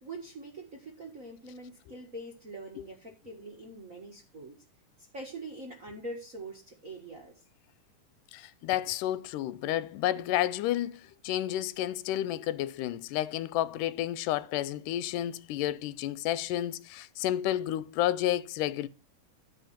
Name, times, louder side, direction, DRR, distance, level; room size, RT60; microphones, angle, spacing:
voice 1, 0.0-4.6 5.1-7.4, right 2 dB, 40° right, 1.2 m, -44 dB
voice 2, 8.3-18.9, left 13 dB, 85° left, 2.2 m, -31 dB
13.0 x 5.0 x 5.8 m
omnidirectional pair, 3.6 m